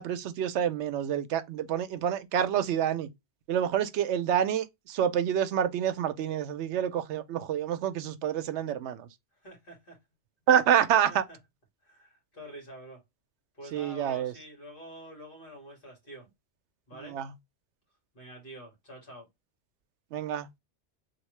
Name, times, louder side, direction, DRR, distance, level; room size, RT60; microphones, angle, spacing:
voice 1, 0.0-3.1 3.5-9.1 10.5-11.2 13.7-14.3 17.1-17.3 20.1-20.5, right 9 dB, 80° right, 0.9 m, -27 dB
voice 2, 9.4-10.0 11.1-11.4 11.8-13.0 13.5-16.3 16.9-17.2 18.1-19.3, equal, 50° left, 2.1 m, -47 dB
3.6 x 2.7 x 3.1 m
omnidirectional pair, 1.1 m